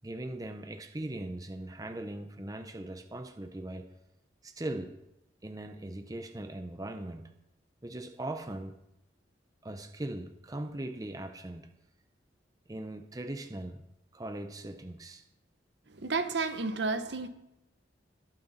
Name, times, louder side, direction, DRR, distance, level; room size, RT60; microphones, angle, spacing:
voice 1, 0.0-3.9 4.4-5.0 5.4-7.3 7.8-8.8 9.6-11.7 12.7-13.8 14.1-15.2, right 1 dB, 20° right, 0.6 m, -40 dB
voice 2, 15.9-17.3, right 3 dB, 65° right, 0.9 m, -31 dB
20.5 x 7.7 x 4.2 m
head